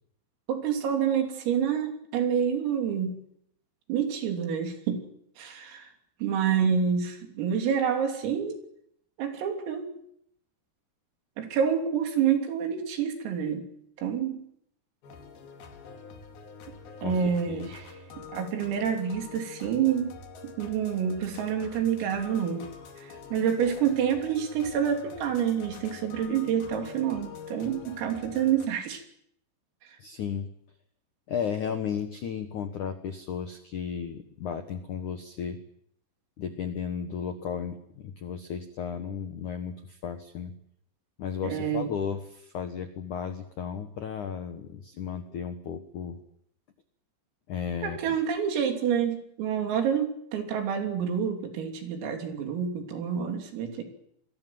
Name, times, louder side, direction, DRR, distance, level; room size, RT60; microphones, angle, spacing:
voice 1, 0.5-3.2 3.9-5.0 5.4-5.9 6.2-8.6 9.2-9.9 11.4-13.6 14.0-14.4 17.0-20.1 20.4-22.7 23.0-29.0 41.4-41.9 47.8-53.8, right 8 dB, 85° right, 5 dB, 6.0 m, -28 dB
sound 1, 15.0-28.7, left 5 dB, 55° left, 3.9 m, -45 dB
voice 2, 30.0-30.5 31.3-35.6 36.4-40.5 41.2-46.2 47.5-48.2, left 7 dB, 75° left, 8 dB, 1.8 m, -34 dB
27.5 x 21.5 x 7.7 m, 0.73 s
omnidirectional pair, 5.9 m